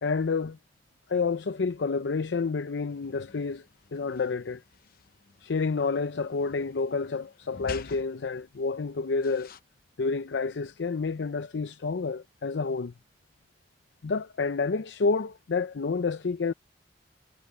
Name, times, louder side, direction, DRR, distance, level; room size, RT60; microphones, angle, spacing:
voice 1, 0.0-0.6 1.1-3.7 3.9-4.6 5.4-9.5 10.0-12.9 14.0-16.5, left 4 dB, 85° left, 0.6 m, -29 dB
sound 1, 2.9-9.6, left 4 dB, 55° left, 0.8 m, -48 dB
head